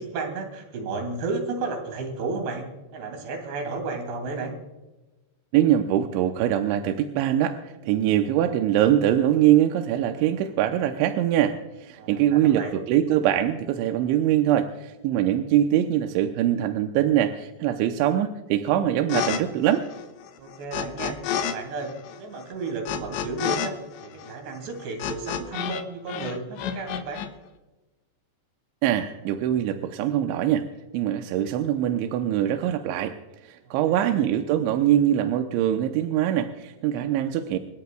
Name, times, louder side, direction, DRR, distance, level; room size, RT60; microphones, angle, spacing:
voice 1, 0.0-2.6 2.9-4.5 12.0-12.7 20.4-21.2 21.4-21.9 22.2-23.7 24.0-27.2 33.9-34.2, right 3 dB, 70° right, 4 dB, 4.6 m, -33 dB
voice 2, 5.5-19.8 28.8-30.7 30.9-33.2 33.4-37.6, right 11 dB, 85° right, 5 dB, 3.1 m, -23 dB
sound 1, 19.1-19.4 19.7-21.5 21.8-25.8 26.1-27.3, left 9 dB, 80° left, 3.5 m, -30 dB
28.0 x 13.0 x 2.3 m, 1.1 s
omnidirectional pair, 5.2 m